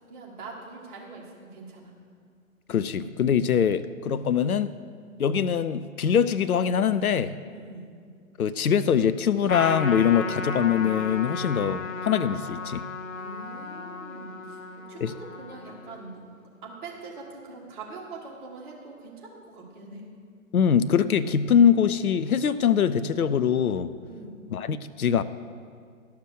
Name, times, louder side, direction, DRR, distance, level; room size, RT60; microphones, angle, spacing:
voice 1, 0.1-1.9 7.5-7.9 11.2-11.8 13.1-14.6 14.9-16.2 16.6-20.0 24.1-24.5, right 3 dB, 35° right, -3 dB, 2.0 m, -43 dB
voice 2, 2.7-4.7 5.2-7.3 8.4-12.8 15.0-15.1 20.5-23.9 24.5-25.2, left 8 dB, 85° left, 15 dB, 0.5 m, -23 dB
Trumpet, 9.5-16.2, left 4 dB, 65° left, 0.9 m, -35 dB
11.5 x 5.8 x 6.4 m, 2.1 s
figure-of-eight pair, 130°, 43 cm